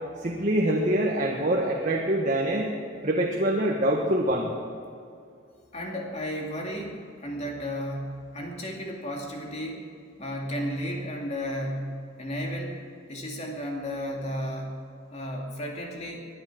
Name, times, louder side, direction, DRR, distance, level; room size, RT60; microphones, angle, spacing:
voice 1, 0.2-2.7 3.0-4.5, right 1 dB, 40° right, -1 dB, 1.5 m, -25 dB
voice 2, 5.7-9.9 10.2-12.8 13.1-14.8 15.1-16.3, equal, 35° left, 0 dB, 2.5 m, -33 dB
20.5 x 10.5 x 6.1 m, 2.4 s
head